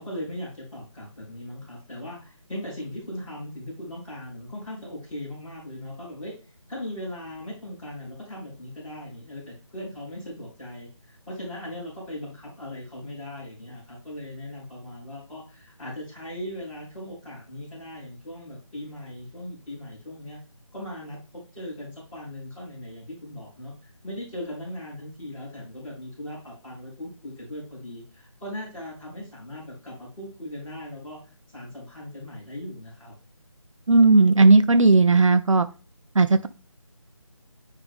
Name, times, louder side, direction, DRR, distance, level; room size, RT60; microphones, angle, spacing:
voice 1, 0.0-6.3 6.7-20.4 20.7-31.2 31.5-33.1, left 1 dB, 5° left, -12 dB, 2.8 m, -38 dB
voice 2, 33.9-35.7 36.1-36.5, right 3 dB, 70° right, 12 dB, 0.6 m, -16 dB
9.7 x 3.7 x 3.5 m, 0.34 s
figure-of-eight pair, 175°, 17 cm